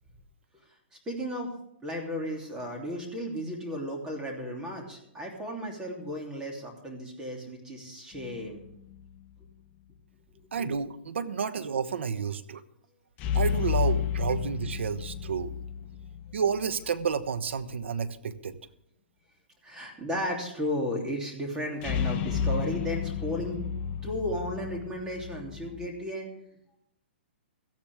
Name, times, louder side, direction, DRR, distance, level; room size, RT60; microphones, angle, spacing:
voice 1, 1.1-1.5 1.8-8.6 10.3-10.7 19.6-23.6 24.0-26.3, equal, 10° right, 0 dB, 3.0 m, -34 dB
sound 1, 8.1-9.1 13.2-16.8 21.8-25.9, left 8 dB, 30° left, 1.0 m, -31 dB
voice 2, 10.5-12.6 13.3-15.5 16.3-18.6, right 6 dB, 85° right, 13 dB, 1.1 m, -30 dB
17.5 x 13.0 x 3.6 m, 0.76 s
hypercardioid pair, 150°, 6 cm